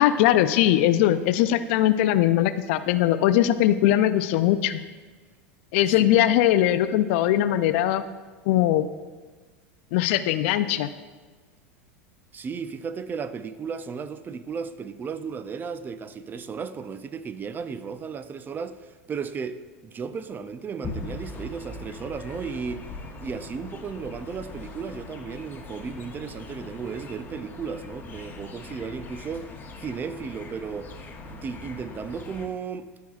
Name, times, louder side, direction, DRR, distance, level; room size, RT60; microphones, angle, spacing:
voice 1, 0.0-4.8 5.7-8.0 8.5-8.9 9.9-10.9, left 12 dB, 65° left, 0.4 m, -20 dB
voice 2, 12.3-22.9 23.2-29.5 29.8-30.9 31.3-32.9, right 6 dB, 25° right, 0.4 m, -35 dB
sound 1, 20.8-32.5, left 3 dB, 25° left, 1.0 m, -41 dB
14.0 x 4.7 x 2.4 m
hypercardioid pair, 90°, 7 cm